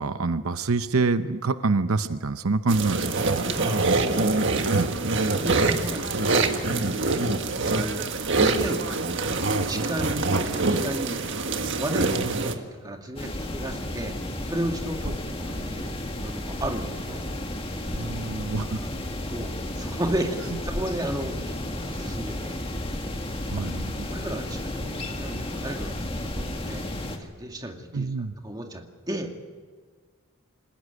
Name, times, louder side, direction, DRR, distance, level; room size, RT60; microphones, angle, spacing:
voice 1, 0.0-3.4 4.7-4.9 17.9-18.8 23.5-24.1 27.9-28.3, right 3 dB, 75° right, 11 dB, 0.8 m, -26 dB
sound 1, 2.7-12.5, right 3 dB, 60° right, 1.7 m, -25 dB
voice 2, 3.4-4.7 5.1-6.6 7.6-8.1 8.3-9.1 9.6-14.2 14.5-15.9 16.2-17.3 19.2-22.6 23.6-23.7 24.0-26.9 27.2-28.1 28.4-29.3, right 1 dB, 20° right, 3 dB, 2.1 m, -34 dB
sound 2, 13.2-27.2, left 1 dB, 25° left, 2.0 m, -33 dB
27.0 x 15.0 x 9.7 m, 1.5 s
head